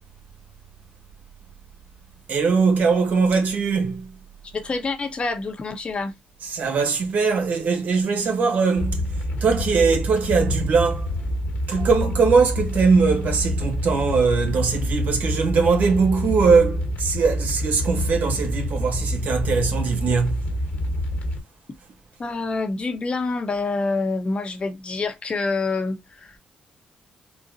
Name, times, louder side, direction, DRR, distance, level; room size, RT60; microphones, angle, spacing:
voice 1, 2.3-4.1 6.5-9.1 9.4-11.1 11.7-20.4, right 5 dB, 65° right, 1.2 m, -21 dB
voice 2, 4.5-6.1 22.2-26.4, left 3 dB, 40° left, 0.8 m, -27 dB
sound 1, 8.8-21.4, left 1 dB, 65° left, 1.2 m, -27 dB
3.9 x 2.2 x 2.5 m
cardioid pair, 90°, 3 cm